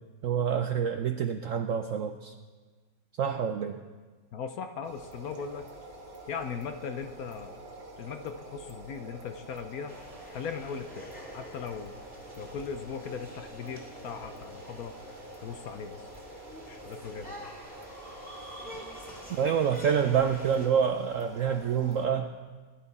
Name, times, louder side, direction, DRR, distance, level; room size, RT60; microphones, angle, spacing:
voice 1, 0.2-2.3 3.2-3.8 19.3-22.3, right 7 dB, 70° right, 7 dB, 0.7 m, -27 dB
voice 2, 4.3-5.7 6.3-7.5 8.0-9.9 10.3-11.1 11.3-12.0 12.4-15.0 15.4-16.1 16.7-17.5 18.7-18.8, left 6 dB, 65° left, 7 dB, 1.0 m, -38 dB
sound 1, 4.8-22.1, right 1 dB, 30° right, 1.2 m, -47 dB
sound 2, 9.9-20.7, equal, 5° left, 1.9 m, -47 dB
20.0 x 11.0 x 4.1 m, 1.4 s
omnidirectional pair, 2.0 m